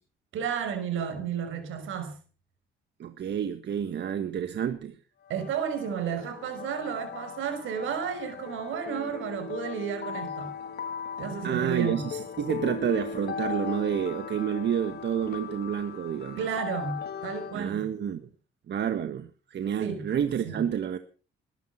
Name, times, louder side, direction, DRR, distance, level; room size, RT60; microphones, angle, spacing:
voice 1, 0.3-2.1 5.3-10.5 11.2-12.0 16.4-17.9 19.8-20.1 20.4-20.6, right 7 dB, 85° right, 5.6 m, -32 dB
voice 2, 3.0-5.0 11.4-16.4 17.5-18.2 18.7-21.0, right 8 dB, 60° right, 1.6 m, -29 dB
sound 1, 5.3-17.6, left 6 dB, 55° left, 1.6 m, -38 dB
21.0 x 11.0 x 5.9 m
cardioid pair, 90°, 20 cm